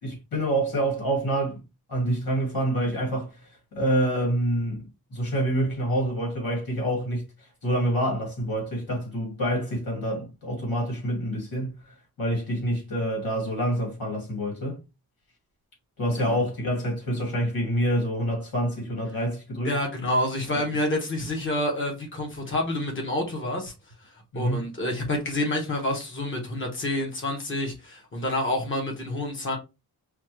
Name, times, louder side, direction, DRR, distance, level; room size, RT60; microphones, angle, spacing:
voice 1, 0.0-1.6 1.9-4.8 5.1-7.3 7.6-14.8 16.0-19.7 20.5-20.6 24.3-24.6, right 1 dB, 60° left, 2.5 m, -27 dB
voice 2, 19.6-23.7 24.0-29.6, left 1 dB, 30° left, 1.1 m, -28 dB
5.1 x 2.4 x 3.1 m
wide cardioid pair, 180°, 39 cm